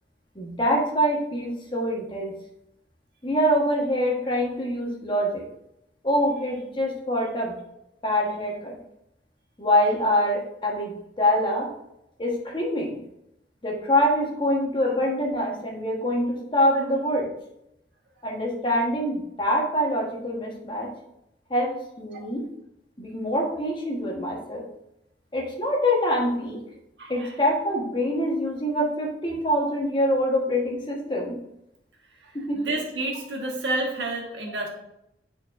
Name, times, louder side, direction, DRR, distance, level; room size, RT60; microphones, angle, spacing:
voice 1, 0.3-2.3 3.2-5.5 6.0-7.6 8.0-8.8 9.6-11.7 12.2-13.0 13.6-17.3 18.2-20.9 21.5-22.4 23.0-24.6 25.3-26.6 27.1-31.3 32.3-32.6, equal, 30° left, -1 dB, 1.3 m, -25 dB
voice 2, 27.0-27.3 32.2-34.7, right 2 dB, 90° right, 0 dB, 1.4 m, -30 dB
9.2 x 4.5 x 2.6 m, 0.83 s
head